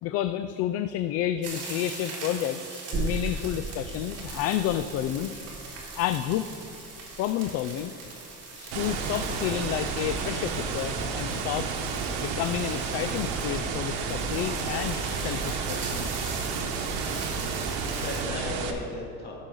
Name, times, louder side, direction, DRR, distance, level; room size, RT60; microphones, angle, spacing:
voice 1, 0.0-5.4 6.0-6.5 7.2-8.0 8.5-11.8 12.2-16.1, left 11 dB, 50° left, 9 dB, 0.4 m, -30 dB
sound 1, 1.4-18.2, right 3 dB, 50° right, 2.8 m, -41 dB
sound 2, 2.9-10.2 10.6-10.7, right 3 dB, 30° right, 1.2 m, -38 dB
sound 3, 8.7-18.7, right 5 dB, 90° right, 1.2 m, -31 dB
voice 2, 17.4-19.4, left 2 dB, 30° left, -2 dB, 2.4 m, -37 dB
15.0 x 6.5 x 3.8 m, 2.4 s
cardioid pair, 130°, 32 cm